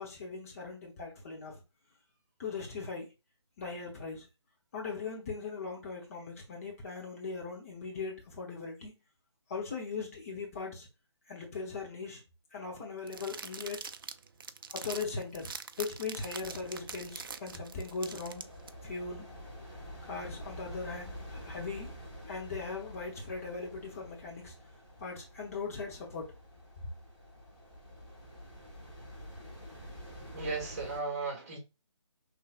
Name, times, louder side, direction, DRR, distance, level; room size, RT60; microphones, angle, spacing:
voice 1, 0.0-1.6 2.4-3.1 3.6-4.3 4.7-8.9 9.5-10.9 11.3-12.2 12.5-13.8 14.7-18.5 18.8-19.2 20.0-21.9 22.3-24.5 25.0-26.3, left 4 dB, 30° left, 1.2 m, -39 dB
sound 1, 13.1-18.7, right 5 dB, 50° right, 0.4 m, -44 dB
sound 2, 16.2-31.0, equal, 10° left, 2.9 m, -48 dB
voice 2, 30.3-31.6, right 4 dB, 35° right, 1.7 m, -35 dB
5.6 x 3.2 x 2.5 m
figure-of-eight pair, 155°, 15 cm